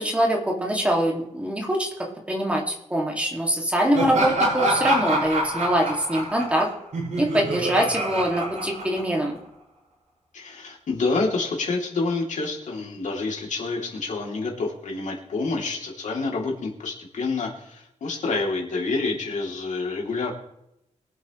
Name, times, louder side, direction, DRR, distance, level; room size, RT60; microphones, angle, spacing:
voice 1, 0.0-1.9 2.3-6.7 7.2-9.4, equal, 10° right, 0 dB, 2.3 m, -23 dB
Laughter, 3.9-9.4, right 1 dB, 65° right, 5.7 m, -26 dB
voice 2, 10.3-20.3, left 3 dB, 70° left, 0 dB, 3.0 m, -28 dB
23.0 x 8.3 x 3.2 m, 0.82 s
wide cardioid pair, 170°, 13 cm